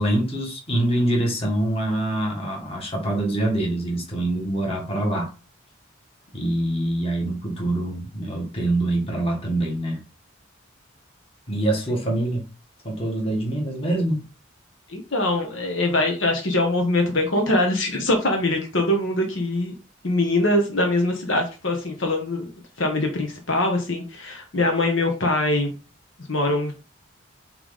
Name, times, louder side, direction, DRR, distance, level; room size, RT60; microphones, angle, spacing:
voice 1, 0.0-5.3 6.3-10.0 11.5-12.5 12.8-14.2, right 1 dB, 30° left, -1 dB, 2.0 m, -25 dB
voice 2, 14.9-19.7 20.0-22.5 22.8-25.7 26.3-26.7, left 1 dB, 65° left, 3 dB, 1.4 m, -23 dB
6.9 x 3.4 x 4.1 m, 0.33 s
head